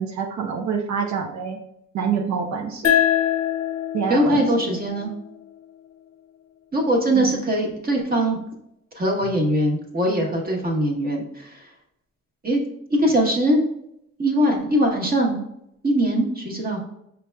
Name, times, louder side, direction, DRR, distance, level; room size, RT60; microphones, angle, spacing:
voice 1, 0.0-1.6 1.9-2.9 3.9-4.4 7.1-7.5, right 6 dB, 70° right, 3 dB, 0.6 m, -26 dB
sound 1, 2.8-6.0, left 10 dB, 55° left, 0.6 m, -24 dB
voice 2, 4.1-5.1 6.7-8.4 9.0-11.6 12.4-12.6 12.9-13.6 14.2-15.4 15.8-16.8, right 1 dB, 30° right, 1 dB, 1.0 m, -21 dB
5.0 x 3.4 x 2.2 m, 0.78 s
cardioid pair, 90°, 30 cm